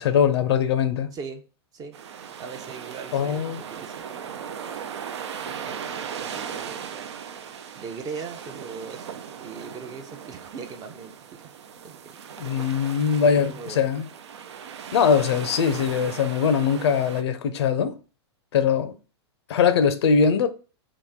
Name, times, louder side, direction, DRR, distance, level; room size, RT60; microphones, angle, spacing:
voice 1, 0.0-1.1 3.1-3.6 12.4-14.0 14.9-18.0 18.5-18.9 19.5-20.5, left 7 dB, 70° left, 0.5 m, -21 dB
voice 2, 1.1-1.4 1.7-2.0 2.4-4.5 5.4-6.9 7.8-9.1 9.4-11.5 11.8-12.0 13.2-13.9, right 5 dB, 25° right, 0.6 m, -40 dB
sound 1, 1.9-17.2, right 7 dB, 80° right, 0.4 m, -38 dB
3.0 x 2.5 x 3.5 m
hypercardioid pair, 115°, 14 cm